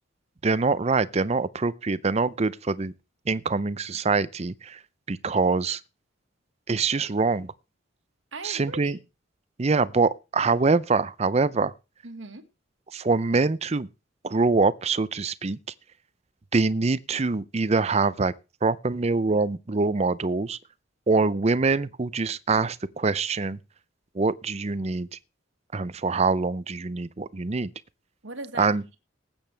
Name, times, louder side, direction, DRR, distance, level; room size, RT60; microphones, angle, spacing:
voice 1, 0.4-2.9 3.3-4.8 5.1-5.8 6.7-7.5 8.4-9.0 9.6-11.7 12.9-13.9 14.2-15.6 16.5-18.3 18.6-20.6 21.1-23.6 24.1-25.1 25.7-27.7 28.6-28.8, right 4 dB, 30° right, 0.5 m, -24 dB
voice 2, 8.3-9.0 12.0-12.5 28.2-29.0, right 3 dB, 70° right, 1.7 m, -39 dB
19.0 x 8.9 x 3.4 m
head